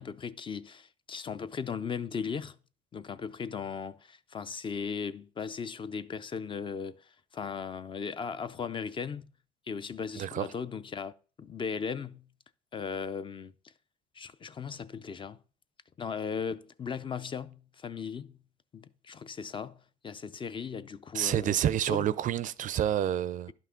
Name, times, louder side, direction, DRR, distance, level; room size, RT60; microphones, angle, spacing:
voice 1, 0.0-2.6 2.9-9.3 9.7-11.1 11.4-12.3 12.7-13.5 14.1-15.4 16.0-18.4 18.7-21.6 21.9-22.0, left 6 dB, 30° left, 0.4 m, -37 dB
voice 2, 21.1-23.5, right 11 dB, 50° right, 0.4 m, -28 dB
11.0 x 5.8 x 3.7 m
cardioid pair, 110°, 17 cm